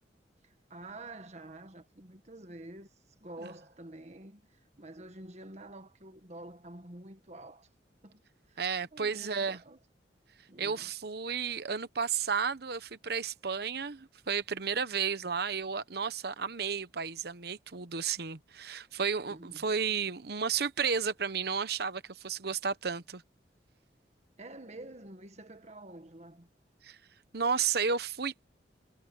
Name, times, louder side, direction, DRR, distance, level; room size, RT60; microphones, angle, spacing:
voice 1, 0.4-2.9 3.2-7.7 8.0-8.2 8.5-8.6 8.9-9.8 10.5-10.9 19.3-19.6 24.4-26.5, right 2 dB, 40° right, 1.7 m, -48 dB
voice 2, 8.6-9.6 10.6-23.2 26.8-27.0 27.3-28.5, right 6 dB, 60° right, 1.0 m, -32 dB
head